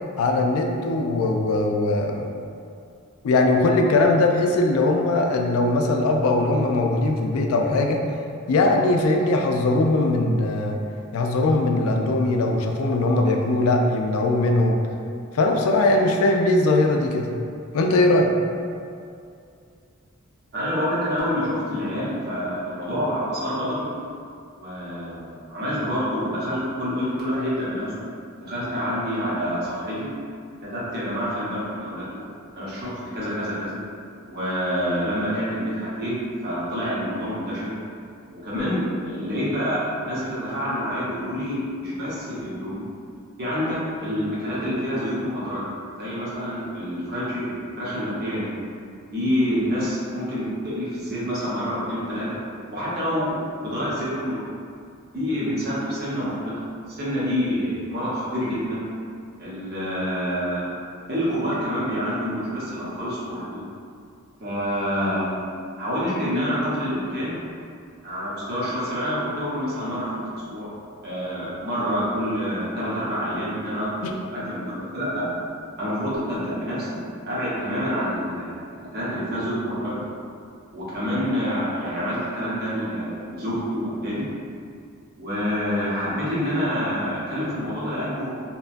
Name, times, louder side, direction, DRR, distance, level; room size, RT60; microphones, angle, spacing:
voice 1, 0.2-2.3 3.2-8.0 8.5-10.8 11.1-14.8 15.3-17.3 17.7-18.3 74.0-74.1, left 2 dB, 75° left, 2 dB, 0.3 m, -20 dB
voice 2, 20.5-23.9 24.5-27.9 28.4-30.1 30.6-32.2 32.5-33.8 34.3-36.1 36.4-37.7 38.3-42.8 43.4-45.7 45.9-48.5 49.1-52.4 52.7-54.5 55.1-58.8 59.4-60.7 61.1-63.6 64.4-65.4 65.8-67.3 68.0-70.7 71.0-75.3 75.8-76.9 77.2-78.6 78.9-80.0 80.7-84.2 85.2-88.4, equal, 50° right, -9 dB, 0.8 m, -27 dB
2.9 x 2.2 x 2.5 m, 2.4 s
head